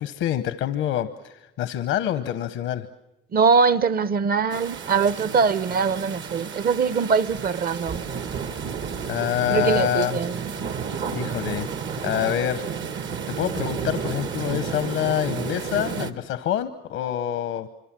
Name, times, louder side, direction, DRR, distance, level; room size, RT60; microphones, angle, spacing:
voice 1, 0.0-2.9 9.1-10.2 11.1-11.7 12.0-12.7 13.3-17.7, left 11 dB, 90° left, 0.9 m, -26 dB
voice 2, 3.3-8.0 9.5-10.4, right 5 dB, 50° right, 0.8 m, -22 dB
sound 1, 4.5-16.1, right 6 dB, 70° right, 1.6 m, -32 dB
26.0 x 25.0 x 7.5 m
cardioid pair, 90°, 20 cm